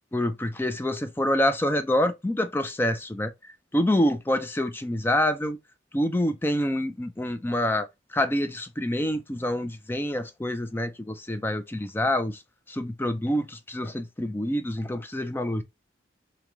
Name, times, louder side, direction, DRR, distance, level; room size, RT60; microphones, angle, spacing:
voice 1, 0.1-5.6 5.9-12.4 12.7-15.6, left 1 dB, 10° left, 0.4 m, -27 dB
3.0 x 2.8 x 3.5 m
head